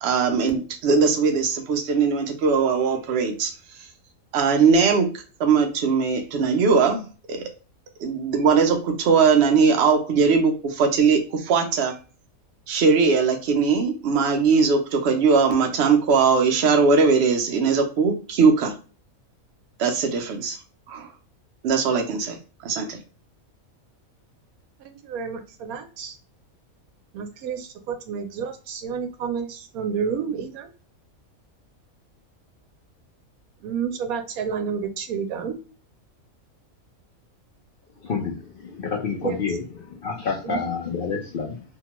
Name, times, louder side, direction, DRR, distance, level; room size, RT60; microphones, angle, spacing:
voice 1, 0.0-3.5 4.3-5.1 5.4-7.0 7.3-7.5 8.0-11.9 12.7-18.7 19.8-20.6 20.9-21.1 21.6-22.4 22.6-23.0, right 5 dB, 60° right, 5 dB, 0.7 m, -20 dB
voice 2, 24.8-26.2 27.1-30.7 33.6-35.6 39.2-39.6 40.4-40.7, right 6 dB, 85° right, 6 dB, 1.1 m, -30 dB
voice 3, 38.0-41.6, left 5 dB, 60° left, -2 dB, 0.5 m, -29 dB
2.8 x 2.2 x 2.9 m, 0.37 s
omnidirectional pair, 1.5 m